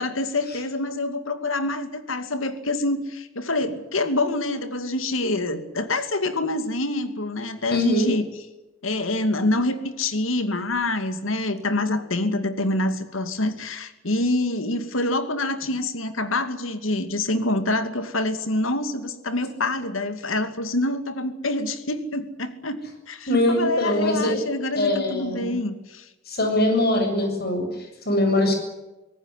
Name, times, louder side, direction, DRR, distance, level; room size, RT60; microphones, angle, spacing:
voice 1, 0.0-8.3 8.8-22.8 23.1-26.1, left 2 dB, 85° left, 10 dB, 2.5 m, -26 dB
voice 2, 7.7-8.1 23.3-24.4 24.8-25.5 26.3-28.6, left 1 dB, 55° left, 5 dB, 7.7 m, -22 dB
25.0 x 18.0 x 9.8 m, 1.0 s
head